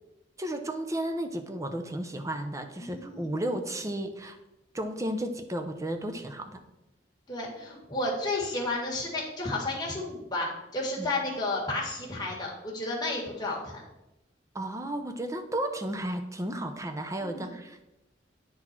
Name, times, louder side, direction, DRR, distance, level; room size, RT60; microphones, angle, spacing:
voice 1, 0.4-4.4 4.7-6.6 11.0-11.1 14.5-17.8, right 1 dB, 15° right, 6 dB, 0.6 m, -33 dB
voice 2, 2.8-3.3 7.3-13.8 17.2-17.5, left 2 dB, 25° left, -3 dB, 1.8 m, -32 dB
9.4 x 4.2 x 4.4 m, 0.94 s
head